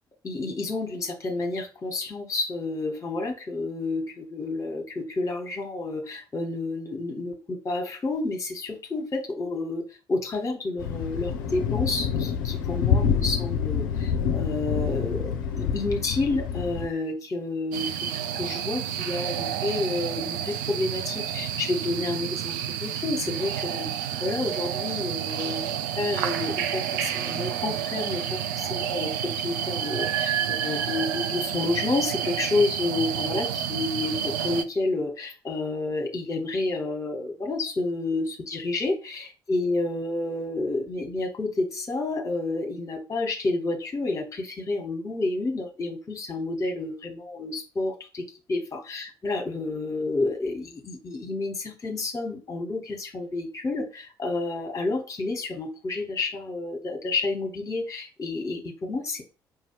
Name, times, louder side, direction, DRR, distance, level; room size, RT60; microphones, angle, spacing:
voice 1, 0.2-18.1 18.3-23.9 24.2-59.2, left 2 dB, 30° left, 3 dB, 1.2 m, -30 dB
Thunder, 10.8-16.9, left 7 dB, 70° left, 0.5 m, -27 dB
sound 1, 17.7-34.6, right 9 dB, 70° right, 0.4 m, -30 dB
5.0 x 2.7 x 3.0 m, 0.34 s
figure-of-eight pair, 45°, 11 cm